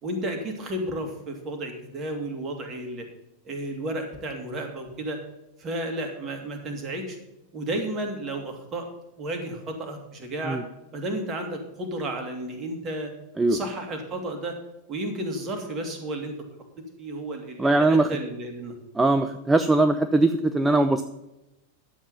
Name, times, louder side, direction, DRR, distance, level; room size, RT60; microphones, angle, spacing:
voice 1, 0.0-3.0 3.4-5.2 5.6-7.2 7.5-8.9 9.2-10.6 10.9-13.1 13.5-14.6 14.9-16.3 17.0-18.7, right 1 dB, 30° right, 4 dB, 2.3 m, -32 dB
voice 2, 17.6-18.1 18.9-21.0, right 2 dB, 10° right, 8 dB, 0.5 m, -21 dB
11.0 x 7.4 x 5.6 m, 0.93 s
figure-of-eight pair, 90°, 0 cm